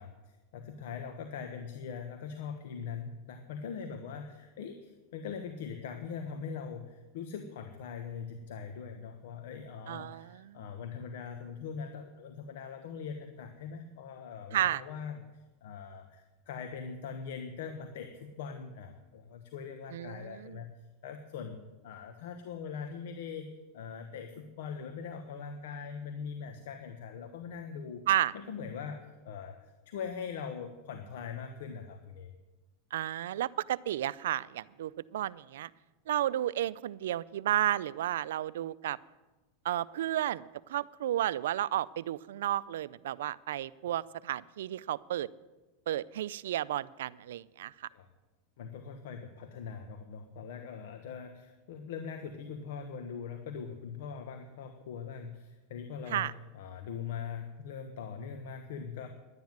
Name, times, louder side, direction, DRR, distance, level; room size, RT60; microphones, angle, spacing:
voice 1, 0.0-20.7 21.0-21.6 21.8-28.1 28.3-32.3 47.9-48.1 48.6-59.1, left 6 dB, 75° left, 7 dB, 1.2 m, -42 dB
voice 2, 9.9-10.6 14.5-14.8 19.9-20.6 28.1-28.3 32.9-35.7 36.1-39.0 39.6-45.3 45.9-47.9 56.1-56.3, right 12 dB, 80° right, 19 dB, 0.4 m, -32 dB
11.5 x 9.5 x 9.3 m, 1.1 s
supercardioid pair, 130°, 0 cm